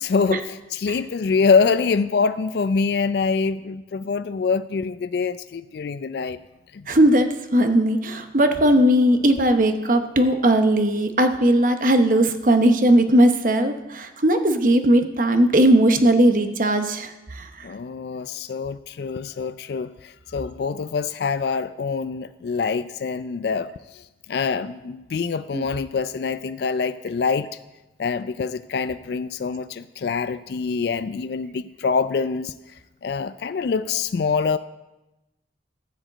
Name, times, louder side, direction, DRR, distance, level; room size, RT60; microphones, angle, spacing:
voice 1, 0.0-6.4 6.7-6.9 17.6-24.0 24.3-27.5 28.0-32.5 33.0-34.6, left 5 dB, 60° left, 12 dB, 0.3 m, -25 dB
voice 2, 6.9-17.7 25.5-25.6, right 1 dB, 45° right, 7 dB, 0.8 m, -18 dB
13.5 x 5.1 x 7.7 m, 1.0 s
head